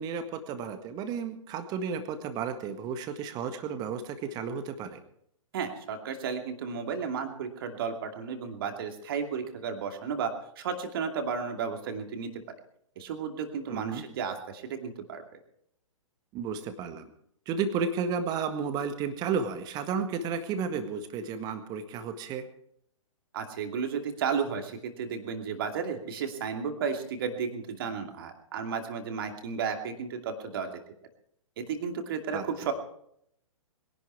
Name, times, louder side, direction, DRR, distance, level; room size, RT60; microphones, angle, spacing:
voice 1, 0.0-5.0 13.7-14.1 16.3-17.0 17.5-22.4 32.3-32.4, right 6 dB, 20° right, 9 dB, 1.6 m, -32 dB
voice 2, 5.5-10.3 10.6-12.3 13.0-15.2 23.3-30.8 31.6-32.7, right 6 dB, 45° right, 5 dB, 2.6 m, -33 dB
22.5 x 11.5 x 4.7 m, 0.71 s
figure-of-eight pair, 120°, 17 cm